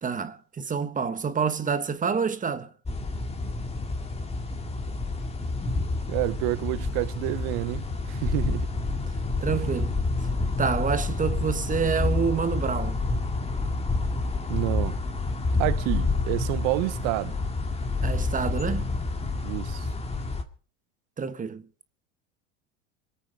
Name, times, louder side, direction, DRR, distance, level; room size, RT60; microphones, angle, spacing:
voice 1, 0.0-2.7 9.4-10.0 10.6-13.0 18.0-18.9 21.2-21.6, right 6 dB, 20° right, 1.2 m, -27 dB
sound 1, 2.8-20.4, left 3 dB, 15° left, 2.3 m, -28 dB
voice 2, 6.1-8.7 14.5-15.0 15.6-17.3 19.4-19.9, right 21 dB, 55° right, 0.8 m, -29 dB
25.0 x 8.9 x 5.2 m
hypercardioid pair, 100°, 39 cm